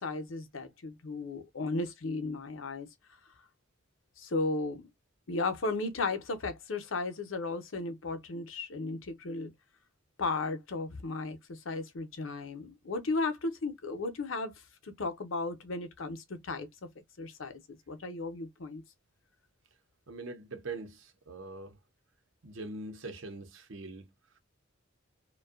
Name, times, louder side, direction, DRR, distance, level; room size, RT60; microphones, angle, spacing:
voice 1, 0.0-2.9 4.2-4.9 5.3-9.5 10.2-14.5 14.8-16.9 17.2-17.6 17.9-18.8, left 3 dB, 80° left, 0.7 m, -35 dB
voice 2, 20.1-21.8 22.4-24.4, right 3 dB, 75° right, 0.8 m, -43 dB
2.5 x 2.3 x 2.3 m
head